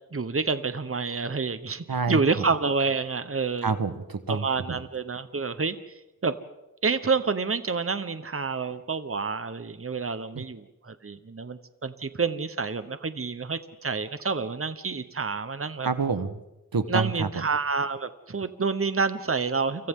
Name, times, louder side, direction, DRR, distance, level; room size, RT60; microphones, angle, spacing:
voice 1, 0.1-3.7 4.3-5.8 6.2-6.4 6.8-15.9 16.9-19.9, right 4 dB, 40° right, 11 dB, 1.0 m, -28 dB
voice 2, 1.9-2.5 3.6-4.8 10.3-10.4 15.8-16.4 16.7-17.5, right 4 dB, 85° right, 10 dB, 1.3 m, -28 dB
29.5 x 25.0 x 3.8 m, 0.97 s
wide cardioid pair, 65°, 35 cm